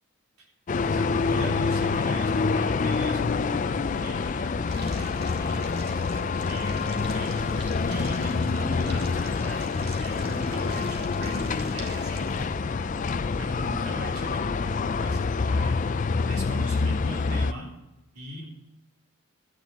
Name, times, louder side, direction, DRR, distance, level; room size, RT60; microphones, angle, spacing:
sound 1, 0.7-17.5, left 4 dB, 35° left, 0.3 m, -27 dB
voice 1, 0.9-12.7 13.4-15.8 16.3-17.7 18.1-18.5, equal, 85° right, -1 dB, 3.7 m, -38 dB
sound 2, 4.7-12.5, right 2 dB, 50° right, 1.8 m, -46 dB
12.5 x 9.5 x 4.0 m, 1.0 s
head